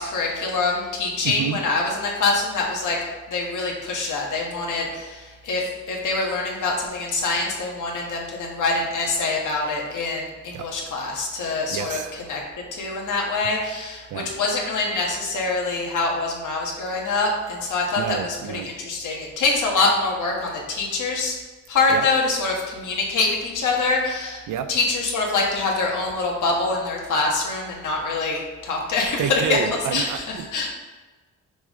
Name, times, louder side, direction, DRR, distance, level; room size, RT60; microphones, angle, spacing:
voice 1, 0.0-3.0 3.3-12.4 12.7-21.3 21.7-24.4 24.7-29.6 29.9-30.2 30.5-30.7, left 3 dB, 85° left, -1 dB, 1.6 m, -25 dB
voice 2, 1.2-1.6 10.5-10.7 11.7-12.1 14.1-14.3 18.0-18.7 21.9-22.1 24.5-24.7 29.2-30.7, right 8 dB, 90° right, 10 dB, 0.6 m, -29 dB
6.2 x 5.5 x 3.7 m, 1.3 s
wide cardioid pair, 135°, 30 cm